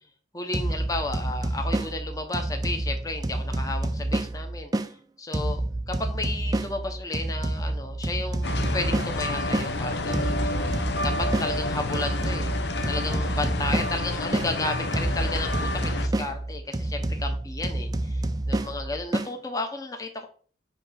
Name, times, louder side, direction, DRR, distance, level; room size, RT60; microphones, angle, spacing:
voice 1, 0.3-4.7 5.2-5.6 5.9-12.5 12.9-20.3, left 2 dB, 20° left, 4 dB, 0.9 m, -33 dB
sound 1, 0.5-4.9 5.3-9.7 10.1-14.5 14.9-19.3, right 1 dB, 20° right, 0.4 m, -29 dB
sound 2, 8.4-16.1, left 2 dB, 80° left, 0.8 m, -29 dB
7.8 x 2.9 x 5.8 m, 0.43 s
head